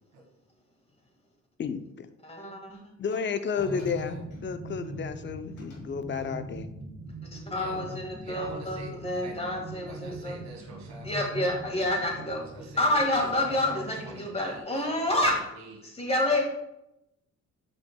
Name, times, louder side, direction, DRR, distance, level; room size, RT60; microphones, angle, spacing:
voice 1, 1.6-2.1 3.0-6.7 7.8-8.0, left 6 dB, 40° left, 10 dB, 0.6 m, -32 dB
voice 2, 2.2-2.9 4.9-5.0 7.2-10.4 11.0-12.4 12.8-15.4 15.8-16.4, left 1 dB, 20° left, 0 dB, 1.9 m, -28 dB
Glass, 3.1-4.9 5.6-5.9 6.2-6.4, left 2 dB, 80° left, 1.8 m, -56 dB
voice 3, 3.5-4.2 7.4-7.8 8.2-9.4 9.9-11.2 12.4-15.8, right 2 dB, 65° right, -1 dB, 1.7 m, -46 dB
sound 1, 3.6-14.6, right 1 dB, 35° right, 1.9 m, -42 dB
8.3 x 5.1 x 2.3 m, 0.87 s
cardioid pair, 90°, 30 cm